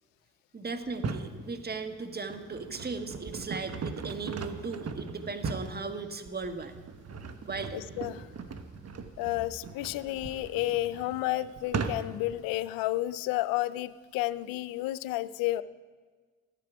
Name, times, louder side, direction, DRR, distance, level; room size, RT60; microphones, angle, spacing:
voice 1, 0.5-6.7 7.4-7.8, right 4 dB, 30° right, 7 dB, 1.4 m, -37 dB
sound 1, 0.8-1.3 2.0-12.3, right 4 dB, 45° right, 1.2 m, -39 dB
voice 2, 7.7-8.3 9.2-15.6, left 16 dB, 80° left, 16 dB, 0.5 m, -31 dB
14.5 x 10.5 x 4.9 m, 1.5 s
hypercardioid pair, 45°, 34 cm